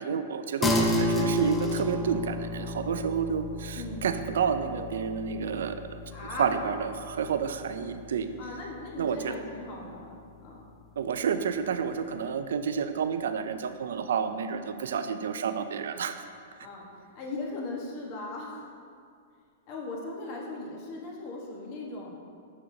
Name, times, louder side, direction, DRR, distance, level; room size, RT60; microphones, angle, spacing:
voice 1, 0.0-8.3 9.0-9.3 11.0-16.2, right 7 dB, 80° right, 10 dB, 0.4 m, -30 dB
sound 1, 0.6-10.3, left 1 dB, 10° left, 0.5 m, -32 dB
voice 2, 3.7-4.1 6.1-6.5 8.4-10.6 14.2-14.3 16.6-16.8 17.1-18.6 19.7-22.1, left 2 dB, 40° left, -2 dB, 1.2 m, -38 dB
7.1 x 6.3 x 2.7 m, 2.4 s
hypercardioid pair, 160°, 0 cm